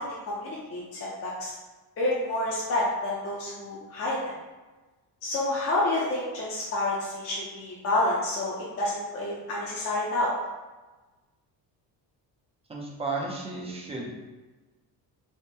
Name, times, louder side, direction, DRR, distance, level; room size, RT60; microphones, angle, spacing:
voice 1, 0.0-1.5 2.0-4.2 5.2-10.3, left 1 dB, 35° left, -6 dB, 0.6 m, -29 dB
voice 2, 12.7-14.1, right 3 dB, 15° right, -2 dB, 0.4 m, -33 dB
3.5 x 2.0 x 4.2 m, 1.2 s
cardioid pair, 170°, 40 cm